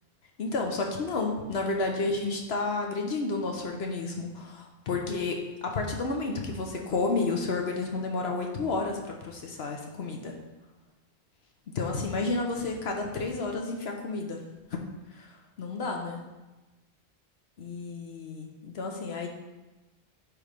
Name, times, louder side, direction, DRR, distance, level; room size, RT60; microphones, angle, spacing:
voice 1, 0.4-10.3 11.7-14.4 14.7-14.8 15.1-16.2 17.6-19.3, left 3 dB, 75° left, 2 dB, 1.1 m, -31 dB
9.4 x 3.2 x 5.1 m, 1.1 s
omnidirectional pair, 1.1 m